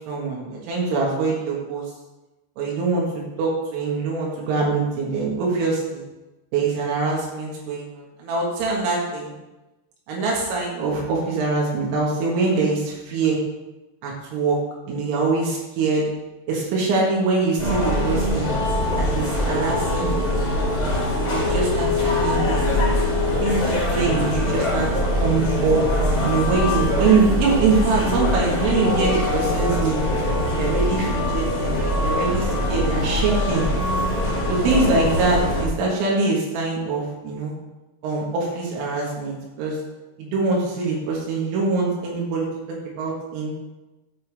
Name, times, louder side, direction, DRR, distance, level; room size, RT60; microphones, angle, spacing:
voice 1, 0.0-1.9 2.6-6.0 6.5-9.3 10.1-13.4 14.0-14.6 14.9-16.1 16.5-18.5 19.0-20.3 21.0-22.6 23.4-24.9 25.2-25.8 26.2-30.0 30.6-33.7 34.5-37.5 38.0-39.8 40.2-42.5 43.0-43.5, right 3 dB, 85° right, -3 dB, 4.1 m, -23 dB
sound 1, 17.6-35.6, left 1 dB, 40° left, 1.7 m, -22 dB
13.5 x 5.6 x 3.4 m, 1.1 s
omnidirectional pair, 5.6 m